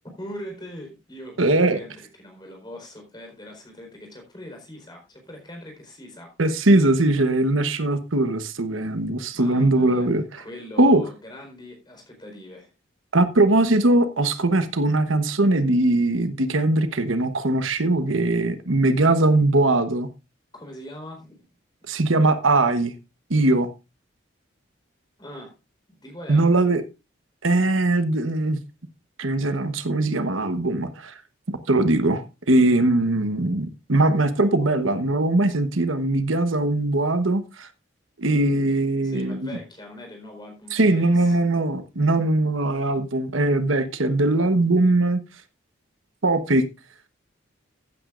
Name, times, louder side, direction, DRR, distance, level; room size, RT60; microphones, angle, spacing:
voice 1, 0.0-6.3 9.3-10.1 10.4-12.7 20.5-21.4 25.2-25.5 25.9-26.7 39.0-41.4, equal, 20° left, 4.4 m, -41 dB
voice 2, 1.4-1.8 6.4-10.4 10.8-11.0 13.1-20.1 21.9-22.9 23.3-23.7 26.3-26.8 27.4-28.6 29.2-31.1 31.5-37.7 38.2-39.4 40.7-45.2 46.2-46.6, right 2 dB, 85° right, 1.2 m, -20 dB
15.0 x 9.2 x 2.5 m
head